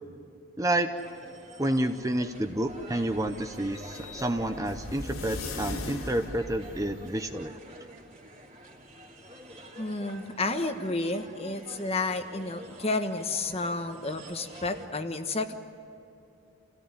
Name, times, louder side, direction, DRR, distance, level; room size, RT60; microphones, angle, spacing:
voice 1, 0.6-0.9 1.6-7.5, right 1 dB, 15° right, 7 dB, 0.8 m, -29 dB
sound 1, 1.0-14.9, equal, 30° right, 2.8 m, -48 dB
sound 2, 2.3-7.3, left 2 dB, 85° left, 3.0 m, -40 dB
voice 2, 9.8-15.5, left 2 dB, 30° left, 8 dB, 1.3 m, -31 dB
28.0 x 17.0 x 9.8 m, 2.9 s
head